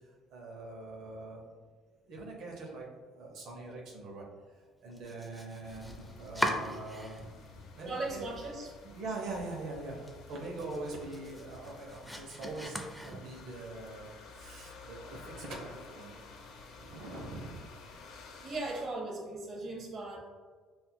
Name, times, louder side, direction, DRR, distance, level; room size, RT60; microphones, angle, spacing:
voice 1, 0.3-1.4 2.1-2.9 3.1-4.2 4.8-7.3 7.8-8.3 8.8-16.1 16.8-17.6, right 2 dB, 70° right, -1 dB, 0.6 m, -43 dB
Domestic sounds home sounds, 4.9-7.5 7.8-8.5 8.9-9.0 9.4-9.5 9.9-13.6, equal, ahead, 0.4 m, -40 dB
sound 1, 5.6-18.9, left 3 dB, 70° left, 0.5 m, -52 dB
voice 2, 7.8-8.7 18.4-20.2, right 2 dB, 40° right, -1 dB, 0.8 m, -38 dB
5.4 x 2.2 x 2.2 m, 1.5 s
cardioid pair, 105°, 0 cm